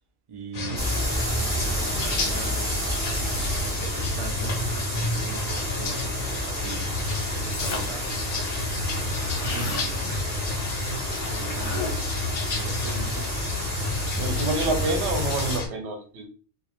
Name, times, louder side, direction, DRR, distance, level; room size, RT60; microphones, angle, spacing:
voice 1, 0.3-2.7 3.6-8.3 9.6-10.2 10.8-12.0 12.5-13.4, right 4 dB, 80° right, 2 dB, 0.3 m, -41 dB
sound 1, 0.5-15.7, left 2 dB, 60° left, 0.8 m, -30 dB
sound 2, 0.8-15.6, equal, 5° right, 0.5 m, -31 dB
sound 3, 7.5-8.1 8.5-8.6 8.7-9.9 11.1-12.2, left 4 dB, 75° left, 1.0 m, -35 dB
voice 2, 14.2-16.3, right 2 dB, 65° right, 4 dB, 0.8 m, -28 dB
2.3 x 2.0 x 2.9 m, 0.39 s
omnidirectional pair, 1.3 m